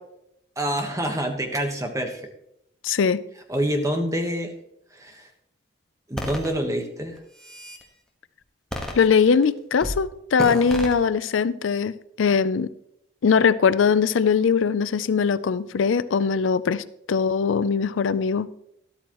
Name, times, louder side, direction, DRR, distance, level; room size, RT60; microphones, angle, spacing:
voice 1, 0.6-2.2 3.5-4.5 4.9-5.3 6.1-7.2, right 1 dB, 15° right, 4 dB, 1.3 m, -26 dB
voice 2, 2.8-3.2 9.0-12.7 13.2-18.5, left 6 dB, 85° left, 16 dB, 0.4 m, -21 dB
sound 1, 6.2-6.5 7.2-7.8 8.7-9.4 9.8-10.0 10.4-10.9, equal, 5° left, 1.4 m, -31 dB
13.0 x 12.0 x 3.1 m, 0.77 s
head